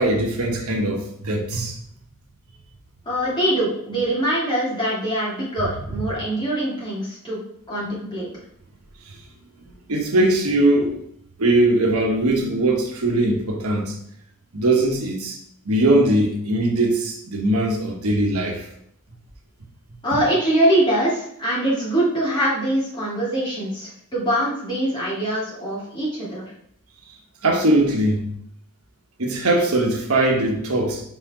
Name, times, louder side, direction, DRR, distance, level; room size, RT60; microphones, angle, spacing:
voice 1, 0.0-1.8 9.9-11.0 11.4-13.9 14.5-15.4 15.6-18.7 27.4-28.3 29.2-31.0, right 1 dB, 80° right, 1 dB, 1.2 m, -20 dB
voice 2, 3.0-7.4 7.7-8.3 20.0-26.5, right 1 dB, 20° left, -7 dB, 2.7 m, -23 dB
5.0 x 4.3 x 5.0 m, 0.70 s
head